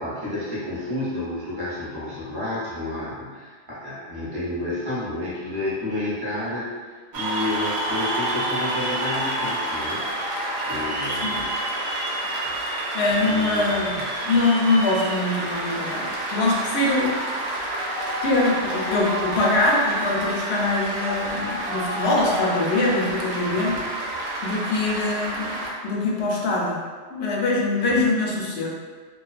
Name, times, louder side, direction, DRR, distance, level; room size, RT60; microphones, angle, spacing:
voice 1, 0.0-6.7 7.1-10.0 10.6-11.5 13.2-14.1 23.4-23.9 27.9-28.0, left 1 dB, 25° right, -9 dB, 0.6 m, -30 dB
Cheering / Applause, 7.1-25.7, right 1 dB, 80° right, 0.9 m, -28 dB
voice 2, 11.1-11.4 12.9-17.2 18.2-23.8 24.4-26.8 27.1-28.7, left 2 dB, 70° left, -3 dB, 0.8 m, -23 dB
2.3 x 2.3 x 2.4 m, 1.5 s
omnidirectional pair, 1.2 m